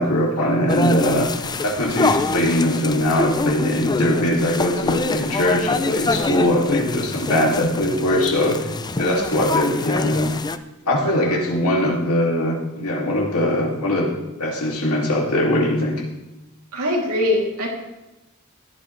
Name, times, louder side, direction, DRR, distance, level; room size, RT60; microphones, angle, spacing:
voice 1, 0.0-8.7 9.0-10.3 10.9-16.0, left 1 dB, 70° left, -1 dB, 2.5 m, -21 dB
sound 1, 0.7-10.6, left 3 dB, 20° left, 0.4 m, -25 dB
voice 2, 16.7-17.7, left 1 dB, 75° right, -2 dB, 3.0 m, -23 dB
15.5 x 11.5 x 3.3 m, 0.99 s
head